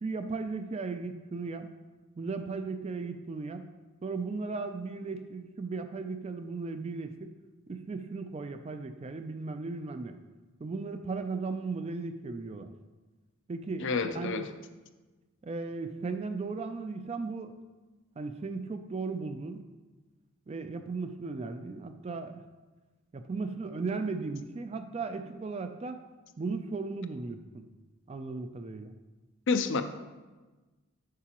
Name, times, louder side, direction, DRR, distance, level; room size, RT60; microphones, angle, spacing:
voice 1, 0.0-1.7 2.2-3.7 4.0-7.3 7.7-10.2 10.6-12.7 13.5-14.5 15.4-17.5 18.2-19.6 20.5-22.4 23.1-26.0 26.4-27.6 28.1-28.9, right 4 dB, 30° right, 8 dB, 0.3 m, -36 dB
voice 2, 13.8-14.5 29.5-29.8, left 4 dB, 55° left, 9 dB, 0.4 m, -28 dB
8.4 x 5.8 x 2.9 m, 1.2 s
head